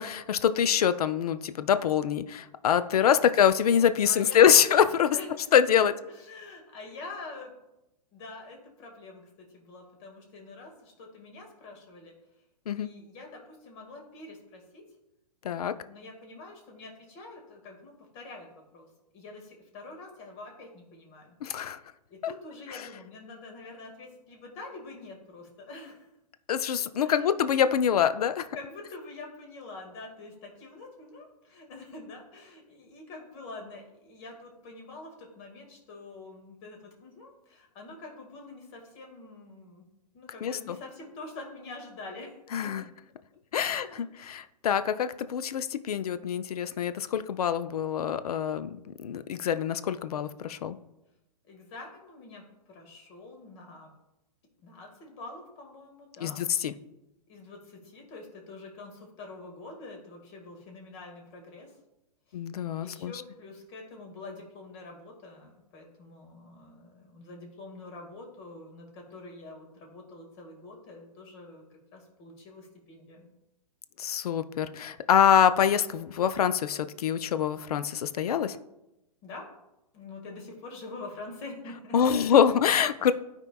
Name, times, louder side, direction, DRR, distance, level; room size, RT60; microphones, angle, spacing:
voice 1, 0.0-5.2 5.5-5.9 12.7-12.9 15.4-15.7 21.4-21.8 22.2-22.3 22.7-22.8 26.5-28.5 40.4-40.8 42.5-42.8 43.5-50.8 56.2-56.7 62.3-63.1 74.0-78.6 81.9-83.1, left 8 dB, 65° left, 12 dB, 0.5 m, -25 dB
voice 2, 4.0-4.7 5.1-5.5 5.8-7.5 8.1-12.1 12.7-14.8 15.8-18.5 18.7-18.9 19.1-21.4 22.1-26.1 27.0-27.3 28.3-39.8 40.1-42.3 42.6-42.7 43.5-44.1 51.4-53.9 54.6-56.4 57.3-61.7 62.3-62.4 62.8-73.3 79.2-79.5 79.9-82.4 83.0-83.1, left 3 dB, 40° left, 1 dB, 1.9 m, -46 dB
13.0 x 4.5 x 2.3 m, 0.91 s
hypercardioid pair, 115°, 21 cm